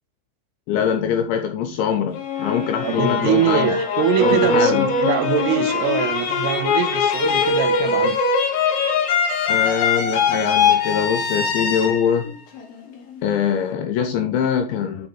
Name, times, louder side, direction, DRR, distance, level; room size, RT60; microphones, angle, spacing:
voice 1, 0.7-3.8 4.2-4.9 9.5-12.4 13.2-15.1, left 8 dB, 85° left, 2.7 m, -23 dB
sound 1, 2.1-13.2, left 4 dB, 70° left, 2.3 m, -21 dB
voice 2, 2.8-8.2, right 11 dB, 90° right, 3.3 m, -23 dB
10.0 x 3.9 x 3.7 m
omnidirectional pair, 5.8 m